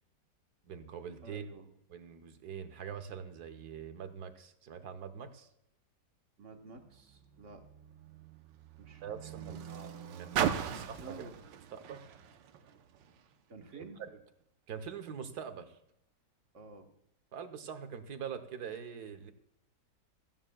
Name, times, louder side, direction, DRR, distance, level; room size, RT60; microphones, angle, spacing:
voice 1, 0.7-1.4 1.9-5.5 9.0-9.6 10.2-11.3 11.7-12.0 13.6-14.2 14.7-15.8 17.3-19.3, right 7 dB, 65° right, 9 dB, 1.4 m, -43 dB
voice 2, 1.2-1.7 6.4-7.7 8.8-9.0 9.3-10.0 10.6-11.4 13.5-14.0 16.5-16.9, right 3 dB, 45° right, 5 dB, 1.5 m, -51 dB
Car, 6.7-13.3 14.2-14.3, right 9 dB, 90° right, 1.5 m, -39 dB
16.5 x 13.5 x 2.3 m, 0.78 s
omnidirectional pair, 1.9 m